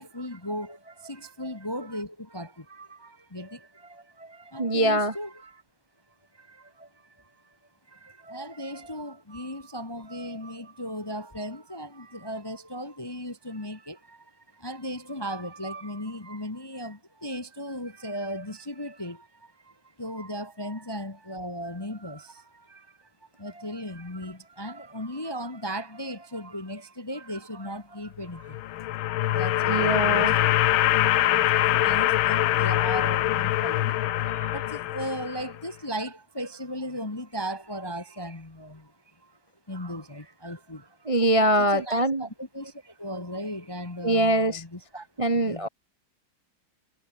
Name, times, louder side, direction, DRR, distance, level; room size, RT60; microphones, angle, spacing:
voice 1, 0.0-5.6 6.3-7.6 7.9-23.1 23.4-30.6 31.1-39.4 39.7-41.1 41.6-45.1 45.3-45.7, equal, 15° left, 0.9 m, -37 dB
voice 2, 4.6-5.1 29.7-30.3 41.1-42.2 44.0-44.6 45.2-45.7, right 1 dB, 20° right, 0.9 m, -23 dB
sound 1, 28.4-35.6, left 14 dB, 80° left, 1.6 m, -24 dB
omnidirectional pair, 2.2 m